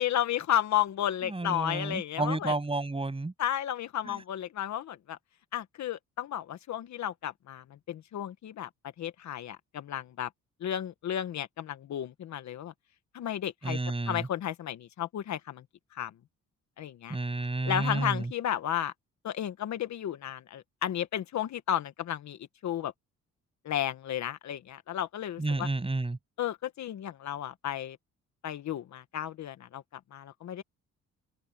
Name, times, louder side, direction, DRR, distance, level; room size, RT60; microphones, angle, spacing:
voice 1, 0.0-2.5 3.4-5.2 5.5-8.7 9.0-10.3 10.6-12.7 13.1-13.8 14.1-15.6 15.9-16.1 16.8-17.2 17.6-18.9 19.2-22.9 23.6-25.7 26.4-28.0 28.4-30.6, left 11 dB, 65° left, 1.4 m, -33 dB
voice 2, 1.2-3.3 4.0-4.2 13.6-14.3 17.1-18.3 25.4-26.2, right 2 dB, 20° right, 7.6 m, -31 dB
open air
cardioid pair, 90°, 30 cm